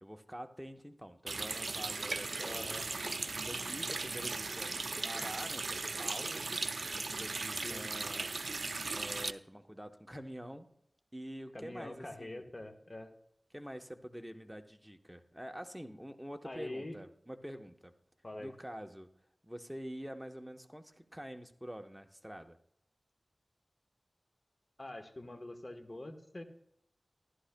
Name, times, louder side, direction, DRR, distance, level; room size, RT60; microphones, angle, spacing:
voice 1, 0.0-2.7 3.1-8.4 8.9-10.7 11.1-12.4 13.5-17.9 18.4-19.1 19.4-22.6, equal, 5° right, 5 dB, 0.9 m, -47 dB
Water tap faucet, 1.3-9.3, right 3 dB, 70° right, 0.4 m, -37 dB
voice 2, 2.4-2.8 7.6-7.8 11.5-13.1 16.4-17.0 18.2-18.5 24.8-26.4, left 1 dB, 40° left, 6 dB, 1.2 m, -44 dB
14.5 x 11.0 x 2.2 m, 0.72 s
wide cardioid pair, 60°, 0 cm